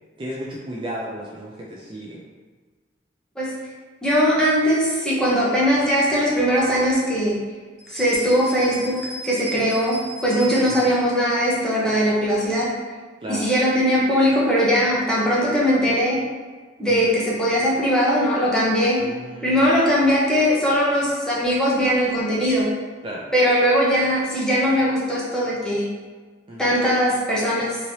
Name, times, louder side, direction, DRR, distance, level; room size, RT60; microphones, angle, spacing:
voice 1, 0.2-2.2 9.6-9.7 10.7-10.9 13.2-13.4 16.9-17.1 19.0-19.8 23.0-23.3 26.5-26.8, right 1 dB, 25° right, -5 dB, 0.3 m, -34 dB
voice 2, 4.0-7.4 7.9-12.7 13.3-16.2 16.8-19.1 19.4-22.7 23.3-25.9 26.6-27.8, equal, 5° left, -7 dB, 0.7 m, -20 dB
sound 1, 7.8-11.1, right 1 dB, 65° right, 1.0 m, -37 dB
3.0 x 2.8 x 2.7 m, 1.4 s
head